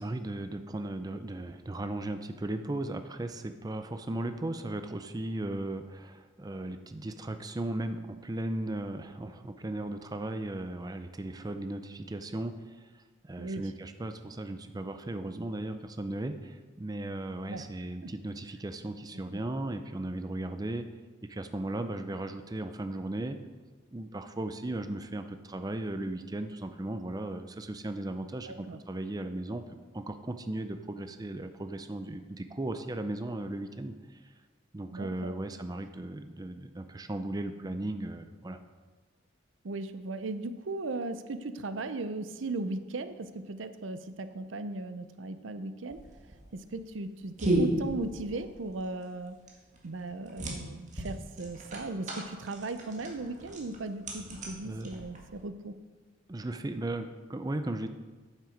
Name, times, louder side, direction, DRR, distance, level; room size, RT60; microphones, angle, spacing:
voice 1, 0.0-20.9 21.3-23.4 23.9-29.6 29.9-34.2 34.7-38.6 54.6-54.9 56.3-57.9, right 1 dB, 20° right, 8 dB, 0.5 m, -36 dB
voice 2, 28.5-28.8 34.9-35.3 39.6-46.0 46.5-49.4 49.8-55.7, right 2 dB, 90° right, 11 dB, 0.6 m, -37 dB
sound 1, 45.9-55.4, right 1 dB, 40° right, 1.8 m, -35 dB
9.2 x 7.4 x 5.1 m, 1.3 s
head